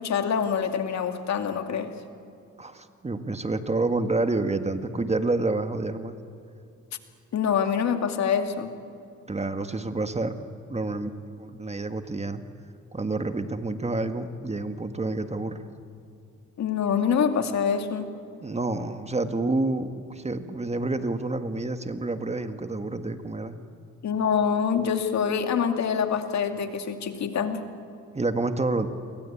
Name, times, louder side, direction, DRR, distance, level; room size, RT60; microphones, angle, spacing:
voice 1, 0.0-1.9 7.3-8.7 16.6-18.1 24.0-27.6, left 7 dB, 65° left, 6 dB, 2.3 m, -25 dB
voice 2, 2.6-6.2 9.3-11.1 11.4-12.4 12.9-15.6 18.4-23.6 28.1-28.9, right 2 dB, 20° right, 8 dB, 1.7 m, -28 dB
29.5 x 23.0 x 8.6 m, 2.6 s
cardioid pair, 90°, 30 cm